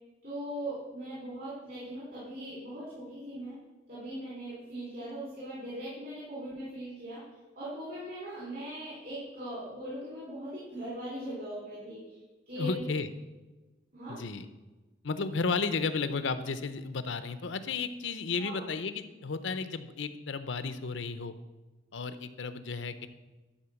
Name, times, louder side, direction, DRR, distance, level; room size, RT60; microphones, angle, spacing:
voice 1, 0.2-3.5 3.9-7.2 7.5-12.2 12.5-12.8 13.9-14.2 18.4-18.6, right 1 dB, 50° right, -8 dB, 3.7 m, -40 dB
voice 2, 12.6-13.1 14.1-14.5 15.0-21.3 21.9-23.1, left 4 dB, 85° left, 11 dB, 0.7 m, -33 dB
12.0 x 4.4 x 7.1 m, 1.2 s
head